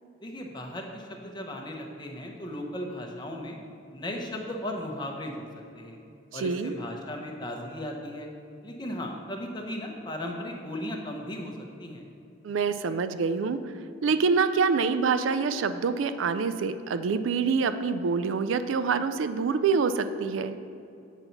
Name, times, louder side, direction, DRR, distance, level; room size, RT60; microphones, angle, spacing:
voice 1, 0.2-3.6 3.9-5.5 5.7-6.0 6.3-8.3 8.6-12.1, left 1 dB, 25° left, 1 dB, 0.8 m, -36 dB
voice 2, 6.3-6.7 12.4-13.6 14.0-20.6, right 5 dB, 85° right, 11 dB, 0.4 m, -26 dB
7.9 x 4.1 x 5.7 m, 2.6 s
head